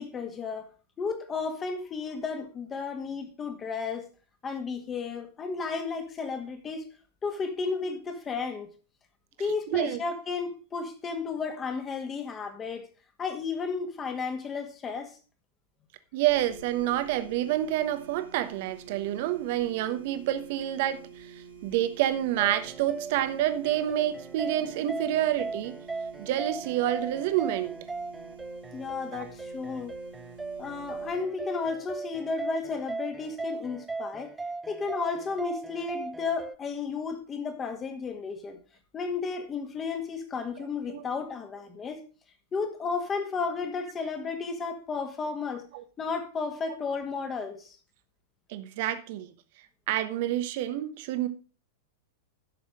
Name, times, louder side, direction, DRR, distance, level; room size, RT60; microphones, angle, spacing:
voice 1, 0.0-4.1 4.4-6.9 7.2-8.7 9.4-12.9 13.2-15.2 28.7-30.0 30.6-34.3 34.7-38.6 38.9-42.0 42.5-45.6 46.0-47.8, left 5 dB, 20° left, 1.9 m, -33 dB
voice 2, 9.7-10.0 16.1-25.8 26.2-27.8 29.1-29.2 40.9-41.0 45.7-45.8 48.5-49.3 49.9-51.3, right 13 dB, 50° right, 1.1 m, -28 dB
sound 1, 16.3-31.1, right 6 dB, 80° left, 6.4 m, -48 dB
sound 2, 22.4-36.5, right 3 dB, 10° right, 0.4 m, -38 dB
11.5 x 7.0 x 5.0 m
figure-of-eight pair, 95°, 0 cm